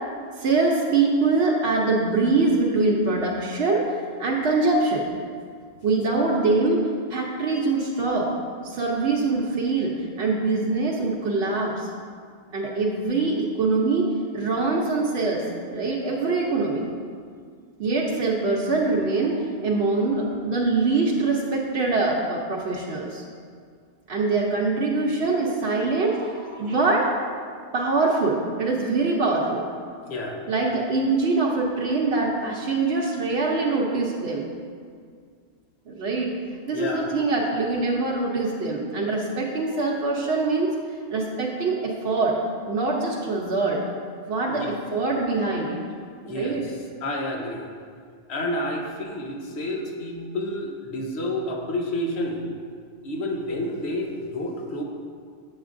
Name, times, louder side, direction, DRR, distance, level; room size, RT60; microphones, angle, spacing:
voice 1, 0.4-3.9 4.2-5.1 5.8-8.3 8.6-11.9 12.5-14.1 14.3-16.9 17.8-23.2 24.1-27.1 27.7-29.8 30.5-34.5 35.9-36.3 36.7-40.7 41.1-42.4 42.7-43.8 44.3-45.8 46.3-46.6, right 3 dB, 70° right, -3 dB, 0.9 m, -24 dB
voice 2, 30.0-30.5 36.7-37.1 44.5-44.7 46.2-47.7 48.3-52.5 53.0-54.8, left 1 dB, 70° left, 1 dB, 1.1 m, -30 dB
8.0 x 6.5 x 2.5 m, 2.1 s
omnidirectional pair, 1.1 m